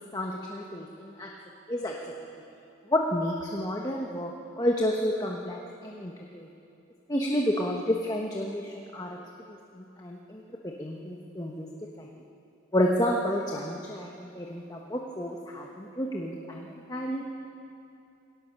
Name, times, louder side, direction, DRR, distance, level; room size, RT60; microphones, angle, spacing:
voice 1, 0.1-1.3 1.7-1.9 2.9-6.5 7.1-9.2 9.8-11.7 12.0-12.1 12.7-16.6 16.9-17.2, equal, 20° left, -1 dB, 1.2 m, -30 dB
22.5 x 17.5 x 6.8 m, 2.7 s
head